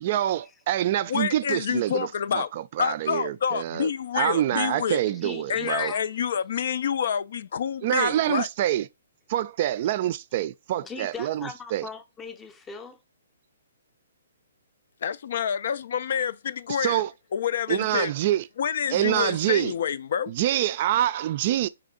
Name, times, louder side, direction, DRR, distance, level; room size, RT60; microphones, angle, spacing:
voice 1, 0.0-5.9 7.8-8.9 9.3-11.9 16.8-17.1 17.7-18.5 18.9-19.7 20.3-21.7, right 12 dB, 45° right, 0.3 m, -26 dB
voice 2, 1.1-2.5 2.8-5.0 5.5-8.5 15.0-17.0 17.3-18.1 18.6-20.3, left 8 dB, 60° left, 0.3 m, -28 dB
voice 3, 5.2-6.0 10.8-13.0, left 5 dB, 15° left, 0.6 m, -40 dB
4.1 x 3.3 x 3.7 m
hypercardioid pair, 135°, 0 cm